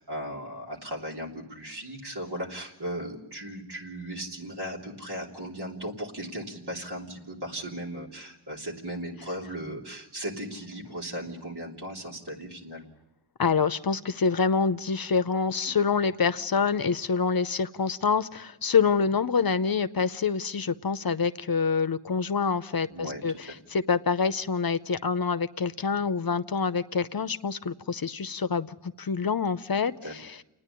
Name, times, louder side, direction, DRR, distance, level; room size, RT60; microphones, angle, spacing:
voice 1, 0.0-12.9 22.9-23.2 30.0-30.1, right 1 dB, 75° right, -2 dB, 3.4 m, -37 dB
voice 2, 13.4-30.4, left 5 dB, 60° left, 13 dB, 0.7 m, -26 dB
29.0 x 9.9 x 9.9 m, 0.97 s
wide cardioid pair, 45°, 40 cm